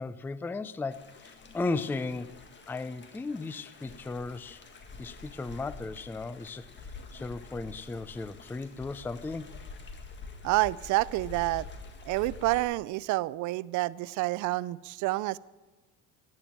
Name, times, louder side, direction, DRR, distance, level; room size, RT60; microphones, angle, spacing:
voice 1, 0.0-2.4 2.7-4.6 5.0-9.6, left 3 dB, 5° left, 15 dB, 0.4 m, -36 dB
sound 1, 0.9-12.6, left 4 dB, 35° left, 1.8 m, -47 dB
voice 2, 10.4-11.7 12.1-15.4, right 19 dB, 65° right, 19 dB, 0.5 m, -28 dB
11.5 x 9.7 x 7.4 m, 1.3 s
cardioid pair, 115°, 33 cm